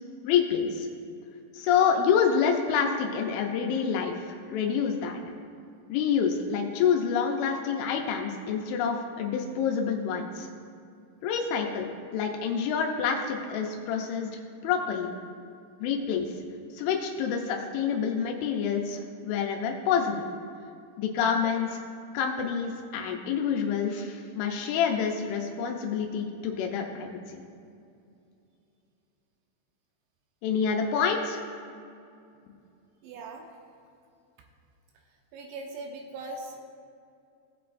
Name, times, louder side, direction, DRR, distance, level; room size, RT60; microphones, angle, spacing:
voice 1, 0.2-0.9 1.5-5.2 5.9-10.5 11.2-15.1 15.8-16.3 16.7-20.2 21.0-21.8 22.1-27.4 30.4-31.4, left 7 dB, 85° left, 2 dB, 3.2 m, -27 dB
voice 2, 33.0-33.5 35.3-36.7, right 2 dB, 75° right, 2 dB, 2.8 m, -40 dB
18.5 x 7.8 x 2.5 m, 2.5 s
omnidirectional pair, 5.4 m